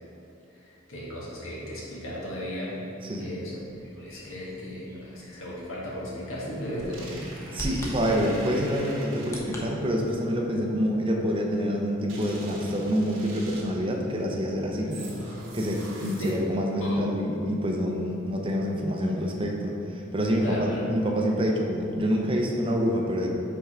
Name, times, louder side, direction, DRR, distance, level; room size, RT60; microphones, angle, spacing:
voice 1, 0.6-2.8 3.2-3.6 3.9-7.2 14.8-15.1 16.2-16.4 16.8-17.1 20.4-20.9, equal, 75° left, -5 dB, 1.5 m, -35 dB
Bird vocalization bird call bird song, 3.6-9.6, equal, 15° left, 0.9 m, -42 dB
sound 1, 6.5-9.7 12.1-13.9 14.9-16.7, right 1 dB, 75° right, 1.5 m, -42 dB
voice 2, 7.5-15.0 15.5-23.3, equal, 25° right, 0 dB, 0.7 m, -27 dB
5.6 x 4.5 x 4.9 m, 2.8 s
head